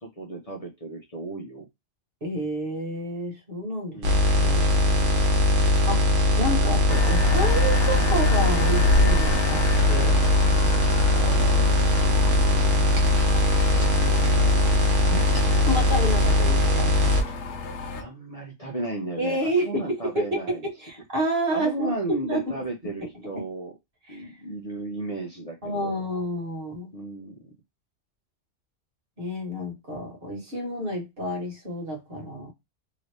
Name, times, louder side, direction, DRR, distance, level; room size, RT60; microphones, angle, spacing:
voice 1, 0.0-1.7 3.9-4.2 11.1-12.1 13.5-14.7 17.3-17.4 17.9-20.7 21.5-23.7 24.1-26.0 26.9-27.5, right 2 dB, 35° left, 0.7 m, -35 dB
voice 2, 2.2-4.0 4.3-4.6 5.9-6.1 6.4-11.0 15.1-17.0 19.2-22.7 23.0-23.1 23.3-23.4 24.1-24.3 25.6-26.9 29.2-32.5, equal, 50° right, 1.5 m, -30 dB
sound 1, 4.0-17.2, left 1 dB, 80° right, 1.2 m, -20 dB
sound 2, 6.9-18.0, left 4 dB, 75° left, 0.9 m, -34 dB
2.9 x 2.7 x 3.2 m
omnidirectional pair, 1.2 m